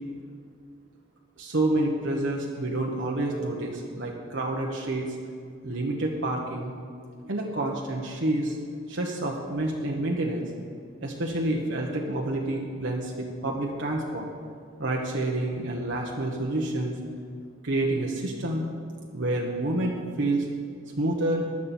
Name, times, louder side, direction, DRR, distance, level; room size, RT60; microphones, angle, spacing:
voice 1, 1.4-5.2 5.6-6.7 7.2-8.6 8.9-10.5 11.0-13.1 13.4-14.3 14.8-16.9 17.6-18.6 19.1-20.5 21.0-21.4, right 1 dB, 65° right, -1 dB, 1.2 m, -28 dB
16.0 x 11.0 x 4.4 m, 2.2 s
head